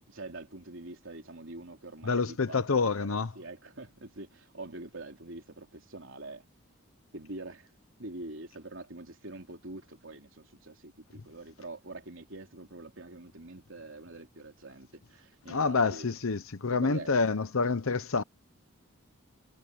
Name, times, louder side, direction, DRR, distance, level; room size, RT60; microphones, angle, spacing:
voice 1, 0.0-6.4 7.1-7.7 8.0-16.1 16.7-17.1, right 2 dB, 65° right, 3.4 m, -45 dB
voice 2, 2.0-3.3 15.5-18.2, left 4 dB, 75° left, 0.9 m, -27 dB
head